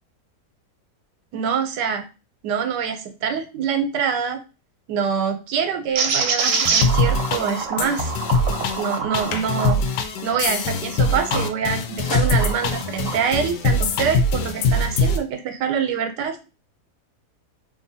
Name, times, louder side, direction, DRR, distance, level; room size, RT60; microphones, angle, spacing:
voice 1, 1.3-2.0 2.4-4.4 4.9-8.1 8.8-9.8 10.2-16.4, right 7 dB, 90° right, 7 dB, 1.2 m, -25 dB
sound 1, 6.0-11.5 12.0-13.2, right 5 dB, 60° right, 0.9 m, -26 dB
sound 2, 6.4-15.2, left 2 dB, 80° left, 1.2 m, -23 dB
2.8 x 2.7 x 3.9 m, 0.31 s
omnidirectional pair, 1.8 m